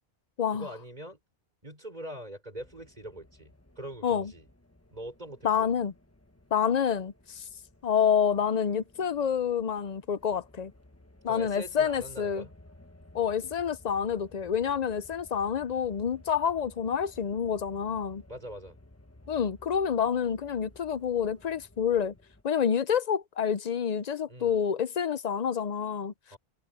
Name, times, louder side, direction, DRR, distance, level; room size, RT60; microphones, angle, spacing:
voice 1, 0.5-1.2 1.6-4.5 4.9-5.7 11.3-12.5 18.3-18.8 24.3-24.5 26.3-26.4, right 1 dB, 40° right, 5.7 m, -43 dB
sound 1, 2.6-22.4, left 1 dB, 15° left, 1.3 m, -56 dB
voice 2, 5.4-5.9 6.5-7.4 7.8-10.7 11.2-12.4 13.1-18.2 19.3-22.1 22.4-26.1, left 7 dB, 50° left, 0.6 m, -28 dB
omnidirectional pair, 1.0 m